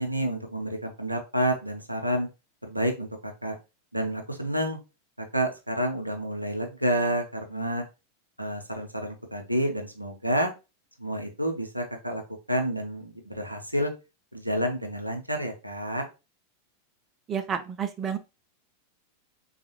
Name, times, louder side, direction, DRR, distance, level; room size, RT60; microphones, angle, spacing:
voice 1, 0.0-2.3 2.6-3.6 3.9-4.8 5.2-7.8 8.4-10.5 11.0-12.2 12.5-13.9 14.3-16.0, equal, 85° right, 4 dB, 0.6 m, -29 dB
voice 2, 17.3-18.2, right 7 dB, 25° right, 8 dB, 0.4 m, -30 dB
3.5 x 2.3 x 2.8 m, 0.28 s
figure-of-eight pair, 90°, 0 cm